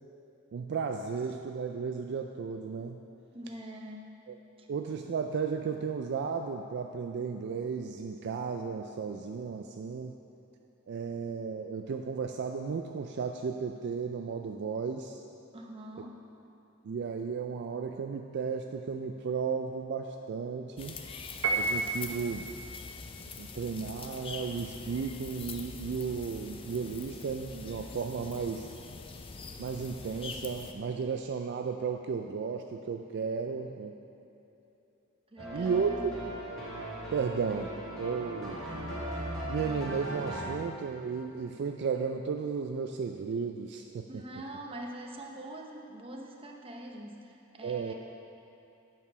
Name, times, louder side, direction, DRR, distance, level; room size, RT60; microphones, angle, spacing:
voice 1, 0.5-3.0 4.3-4.4 4.7-10.1 10.9-15.2 16.8-21.0 21.6-22.5 23.4-28.7 29.6-33.9 35.5-36.3 37.1-37.7 38.0-38.6 39.5-44.2 47.6-47.9, right 5 dB, 55° right, 4 dB, 0.3 m, -34 dB
voice 2, 3.3-4.1 4.6-4.7 15.5-16.2 35.3-36.0 44.1-47.9, right 1 dB, 25° right, 1 dB, 0.8 m, -44 dB
sound 1, 20.8-30.7, left 4 dB, 25° left, 0.4 m, -44 dB
Piano, 21.4-22.3, right 3 dB, 75° right, 0.9 m, -30 dB
sound 2, 35.4-40.5, right 1 dB, 5° left, 1.7 m, -38 dB
8.6 x 4.7 x 6.0 m, 2.9 s
head